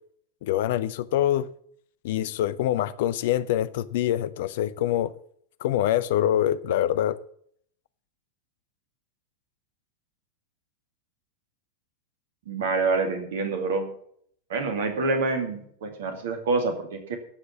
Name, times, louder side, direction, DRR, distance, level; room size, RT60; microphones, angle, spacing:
voice 1, 0.4-1.5 2.0-5.1 5.6-7.2, left 12 dB, 55° left, 0.6 m, -25 dB
voice 2, 12.5-13.9 14.5-17.2, right 3 dB, 60° right, 2.3 m, -27 dB
14.0 x 5.4 x 7.4 m
figure-of-eight pair, 90°, 0 cm